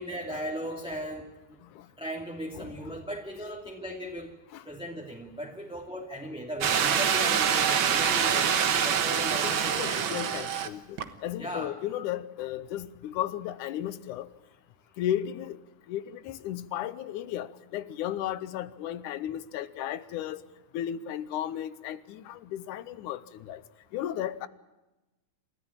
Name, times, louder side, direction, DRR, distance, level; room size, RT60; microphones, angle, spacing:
voice 1, 0.0-1.6 2.0-4.3 4.6-8.5 8.8-9.7 11.4-11.7, equal, ahead, 2.2 m, -37 dB
sound 1, 6.6-10.7 11.0-11.1, right 7 dB, 50° right, 1.6 m, -25 dB
voice 2, 9.1-14.3 15.0-15.6 15.9-20.4 20.7-23.6 23.9-24.5, left 11 dB, 80° left, 2.4 m, -34 dB
28.5 x 14.5 x 8.8 m
omnidirectional pair, 3.5 m